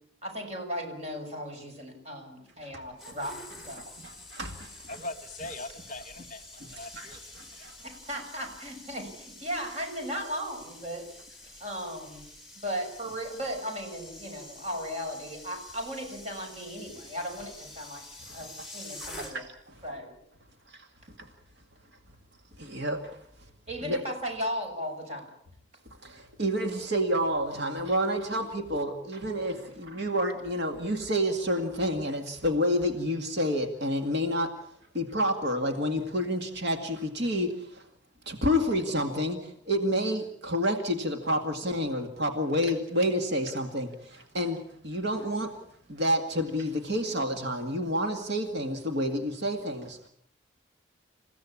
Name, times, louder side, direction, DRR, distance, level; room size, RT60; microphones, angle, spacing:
voice 1, 0.2-3.3 3.6-3.9 7.8-11.1 11.5-12.2 12.6-18.0 18.3-19.4 19.8-20.1 23.7-25.3, equal, 35° right, 3 dB, 6.8 m, -36 dB
voice 2, 2.6-3.2 4.0-4.9 6.6-6.7 6.9-7.8 18.3-18.4 19.3-19.8 20.7-20.9 21.2-21.3 22.6-23.5 23.8-24.0 26.0-37.9 38.3-45.6 45.9-50.1, equal, 60° right, 5 dB, 2.1 m, -29 dB
sound 1, 2.7-19.7 19.9-20.2, left 2 dB, ahead, 4.6 m, -48 dB
voice 3, 4.9-7.2 7.5-7.7, left 2 dB, 40° left, 11 dB, 1.2 m, -41 dB
28.5 x 16.0 x 8.6 m, 0.69 s
head